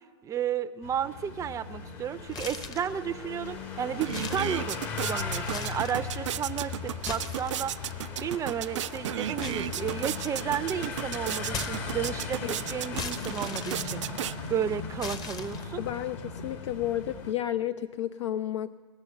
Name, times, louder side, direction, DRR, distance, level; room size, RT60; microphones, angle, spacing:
voice 1, 0.2-7.9 8.2-14.0 14.5-15.8, right 9 dB, 20° right, 10 dB, 0.5 m, -33 dB
sound 1, 0.8-17.3, left 5 dB, 45° left, 1.4 m, -38 dB
sound 2, 2.3-3.0 3.5-3.6 4.0-5.0 5.4-6.1 6.9-7.9 9.4-10.4 11.5-12.3 12.9-14.5 15.0-15.9, left 5 dB, 25° left, 0.9 m, -39 dB
sound 3, 3.5-3.6 3.8-14.8, right 12 dB, 75° right, 0.4 m, -35 dB
voice 2, 15.8-18.7, left 12 dB, 70° left, 12 dB, 0.5 m, -32 dB
19.0 x 6.9 x 7.9 m, 1.5 s
hypercardioid pair, 105°, 16 cm